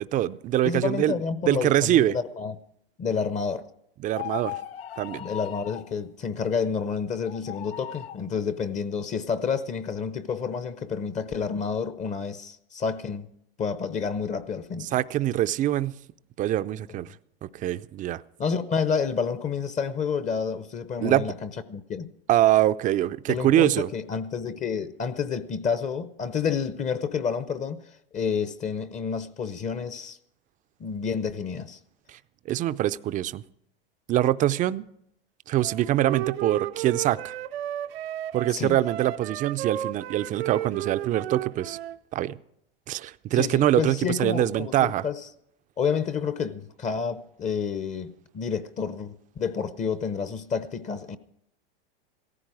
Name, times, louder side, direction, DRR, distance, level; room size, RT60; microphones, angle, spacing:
voice 1, 0.0-1.1 1.5-2.2 4.0-4.6 5.0-5.2 14.9-15.9 16.4-17.1 17.5-18.2 21.0-21.3 22.3-23.9 32.5-33.4 34.1-34.8 35.5-37.3 38.3-41.8 42.1-42.4 42.9-45.0, right 13 dB, 25° right, 0.5 m, -24 dB
voice 2, 0.6-2.6 3.0-3.7 5.2-13.3 13.6-14.9 18.4-22.1 23.3-27.8 28.1-30.2 30.8-31.8 38.5-38.8 43.3-45.2 45.8-51.2, left 6 dB, 25° left, 0.7 m, -29 dB
sound 1, 4.1-5.9 7.2-8.2, left 12 dB, 85° left, 0.7 m, -37 dB
Wind instrument woodwind instrument, 35.6-42.0, right 13 dB, 75° right, 0.7 m, -34 dB
17.0 x 14.5 x 4.8 m
hypercardioid pair, 115°, 30 cm